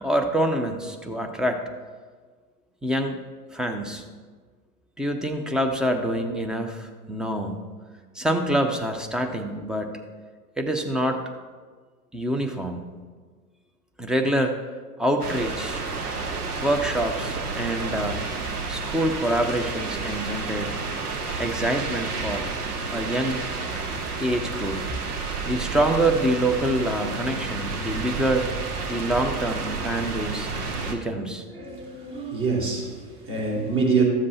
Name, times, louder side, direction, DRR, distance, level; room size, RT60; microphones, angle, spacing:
voice 1, 0.0-1.6 2.8-3.2 3.5-4.0 5.0-7.6 8.1-10.0 10.6-11.2 12.1-12.8 14.0-14.6 15.0-15.8 16.6-18.2 18.7-20.8 21.4-22.5 22.9-23.4 24.2-24.8 25.5-28.5 28.9-30.5 30.9-31.4, right 1 dB, ahead, 4 dB, 0.7 m, -26 dB
sound 1, 15.2-31.0, right 4 dB, 75° right, 1.4 m, -30 dB
voice 2, 31.5-34.0, right 4 dB, 30° right, -2 dB, 3.3 m, -25 dB
13.5 x 7.5 x 4.2 m, 1.5 s
figure-of-eight pair, 95°, 46 cm